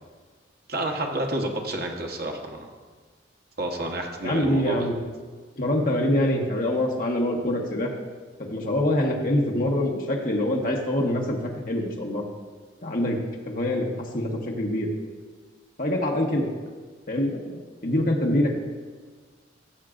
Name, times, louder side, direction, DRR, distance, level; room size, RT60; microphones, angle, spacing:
voice 1, 0.7-2.7 3.6-4.9, right 1 dB, 55° right, 1 dB, 1.1 m, -30 dB
voice 2, 4.2-5.0 5.6-7.9 8.4-12.2 12.8-13.2 13.4-13.9 14.1-14.9 15.8-16.4 17.1-17.6 17.8-18.5, left 1 dB, 45° left, 0 dB, 1.0 m, -25 dB
14.5 x 7.4 x 2.5 m, 1.5 s
head